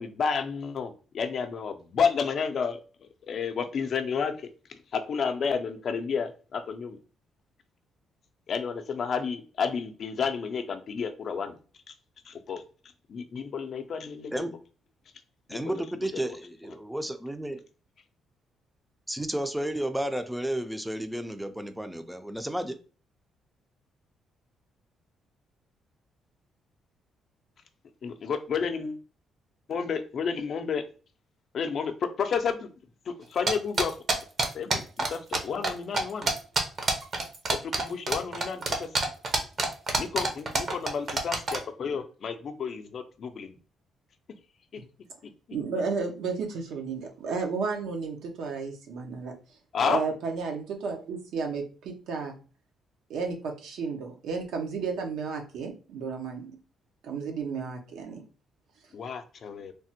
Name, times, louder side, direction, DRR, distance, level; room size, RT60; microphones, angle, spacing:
voice 1, 0.0-2.8 3.3-4.5 4.9-7.0 8.5-11.6 12.3-12.6 13.1-14.5 15.5-15.8 16.1-16.4 28.0-29.0 29.7-30.8 31.5-32.7 33.3-33.9 34.5-36.3 37.5-38.9 40.0-43.6 49.7-50.0 58.9-59.7, left 6 dB, 55° left, 0.4 m, -31 dB
voice 2, 15.5-17.6 19.1-22.8, right 1 dB, 5° right, 0.4 m, -32 dB
sound 1, 33.5-35.4 35.6-35.7 35.9-41.6, right 3 dB, 50° right, 0.7 m, -26 dB
voice 3, 45.5-49.3 49.8-52.4 53.1-56.6 57.0-58.2, right 5 dB, 80° right, 0.7 m, -32 dB
3.3 x 2.1 x 2.8 m
cardioid pair, 90°, 0 cm